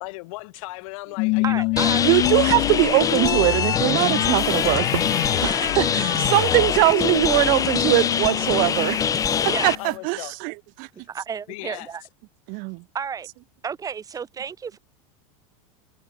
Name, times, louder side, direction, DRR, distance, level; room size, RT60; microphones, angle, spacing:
voice 1, 0.0-2.7 6.3-7.2 7.5-7.6 9.3-10.4 11.0-11.1 11.5-11.9 12.5-12.6, left 25 dB, 65° left, 1.5 m, -38 dB
sound 1, 1.2-9.9, left 25 dB, 50° left, 1.4 m, -27 dB
voice 2, 1.4-2.1 7.1-7.2 9.5-9.8 10.9-12.0 12.9-13.3 13.6-14.8, right 6 dB, 20° right, 1.5 m, -32 dB
sound 2, 1.8-9.8, left 7 dB, 20° left, 0.6 m, -24 dB
voice 3, 2.0-9.0 9.6-10.9 12.5-12.8, right 32 dB, 50° right, 0.4 m, -22 dB
sound 3, 4.4-10.0, right 14 dB, 85° right, 5.5 m, -39 dB
supercardioid pair, 135°, 18 cm